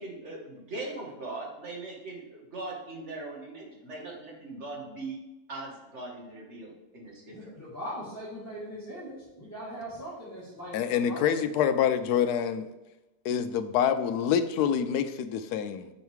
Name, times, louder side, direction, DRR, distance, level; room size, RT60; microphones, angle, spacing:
voice 1, 0.0-5.2 5.5-7.6, right 2 dB, 45° right, -1 dB, 1.9 m, -40 dB
voice 2, 7.3-11.3, equal, 10° left, -10 dB, 2.2 m, -40 dB
voice 3, 10.7-12.7 13.2-15.9, left 8 dB, 75° left, 10 dB, 1.1 m, -26 dB
7.3 x 5.2 x 4.7 m, 1.0 s
omnidirectional pair, 1.7 m